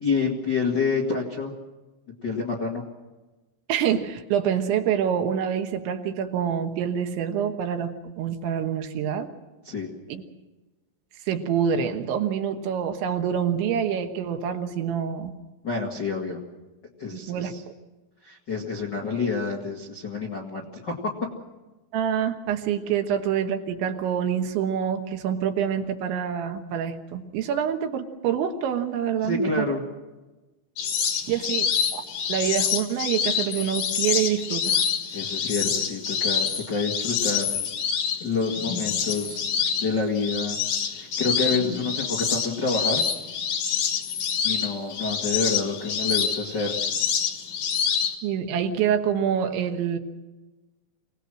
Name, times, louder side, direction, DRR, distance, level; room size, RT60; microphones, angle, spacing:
voice 1, 0.0-1.5 2.2-2.8 9.6-9.9 15.6-16.4 17.0-17.6 18.2-21.0 29.2-29.8 35.1-37.5 38.2-39.5 39.8-40.6 41.0-43.0 44.4-46.7, left 4 dB, 75° left, -1 dB, 1.0 m, -28 dB
voice 2, 3.7-9.3 10.1-10.2 11.3-15.3 17.1-17.5 21.9-29.7 31.3-32.0 32.3-34.8 48.2-50.0, right 8 dB, 70° right, 5 dB, 3.3 m, -26 dB
sound 1, 30.8-48.2, left 7 dB, 55° left, 2.2 m, -27 dB
26.5 x 18.0 x 6.4 m, 1.1 s
omnidirectional pair, 5.9 m